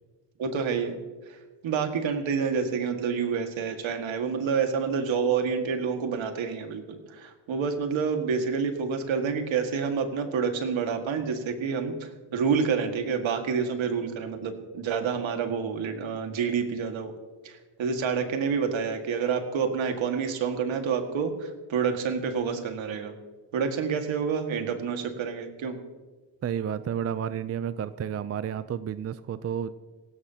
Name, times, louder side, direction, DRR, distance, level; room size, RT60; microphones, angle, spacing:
voice 1, 0.4-1.0 1.6-17.1 17.4-23.1 23.5-25.8, right 6 dB, 70° right, 6 dB, 1.9 m, -28 dB
voice 2, 26.4-29.7, right 8 dB, 30° right, 14 dB, 0.4 m, -31 dB
17.5 x 16.0 x 2.9 m, 1.3 s
cardioid pair, 105°, 48 cm